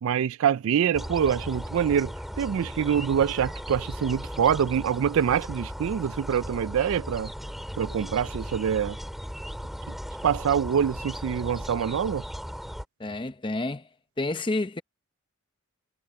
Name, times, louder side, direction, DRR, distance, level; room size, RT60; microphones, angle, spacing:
voice 1, 0.0-7.3 7.8-9.0 9.9-10.0 10.2-12.2, right 8 dB, 65° right, 0.3 m, -25 dB
sound 1, 0.9-12.8, equal, ahead, 3.5 m, -37 dB
voice 2, 13.0-13.8 14.2-14.8, left 2 dB, 20° left, 0.7 m, -29 dB
head